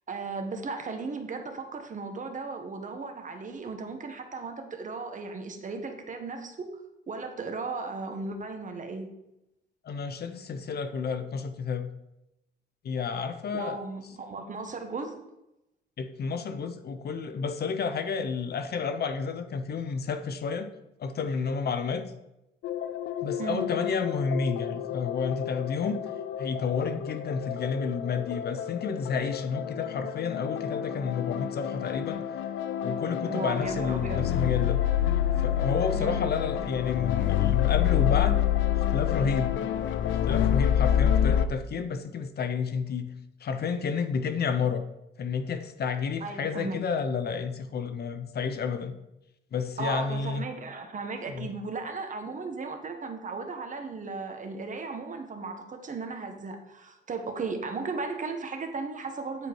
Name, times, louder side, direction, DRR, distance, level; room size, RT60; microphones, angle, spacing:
voice 1, 0.1-6.8 7.1-9.1 13.5-15.2 23.4-23.7 33.2-34.3 35.9-36.3 46.2-46.8 49.8-59.5, right 4 dB, 40° right, 5 dB, 1.4 m, -36 dB
voice 2, 9.8-11.9 12.8-13.8 16.0-20.7 21.0-22.0 23.2-26.0 26.4-32.2 32.8-34.8 35.4-38.4 38.9-39.5 40.2-43.1 43.4-44.8 45.2-49.0 49.5-50.4 51.3-51.5, left 5 dB, 55° left, 9 dB, 0.8 m, -30 dB
sound 1, 22.6-41.5, left 10 dB, 75° left, 0.5 m, -28 dB
9.8 x 4.5 x 4.7 m, 0.88 s
cardioid pair, 90°, 20 cm